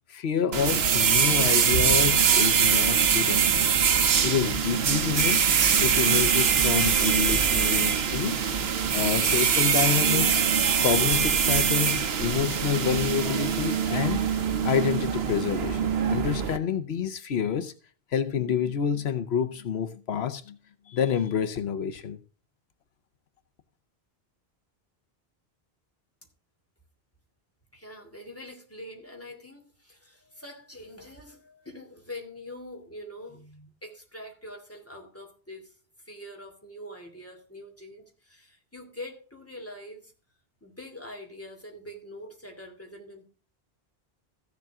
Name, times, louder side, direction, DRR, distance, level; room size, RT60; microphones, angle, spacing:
voice 1, 0.1-8.4 8.9-10.4 10.8-17.7 18.1-20.6 20.9-22.2, left 8 dB, 90° left, 1.1 m, -28 dB
sound 1, 0.5-16.6, right 7 dB, 75° right, 1.1 m, -23 dB
sound 2, 5.6-16.0, left 1 dB, 60° left, 3.1 m, -49 dB
voice 2, 27.7-35.7 36.0-40.1 40.6-43.2, left 1 dB, 15° left, 2.8 m, -44 dB
14.5 x 7.3 x 3.6 m
omnidirectional pair, 1.0 m